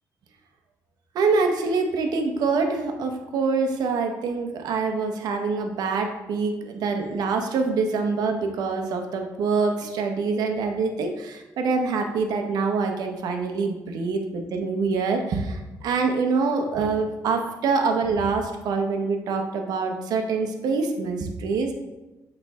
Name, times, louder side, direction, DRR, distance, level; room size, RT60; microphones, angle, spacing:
voice 1, 1.1-21.7, right 4 dB, 80° right, 4 dB, 0.8 m, -25 dB
8.2 x 3.3 x 3.5 m, 1.1 s
cardioid pair, 90°, 7 cm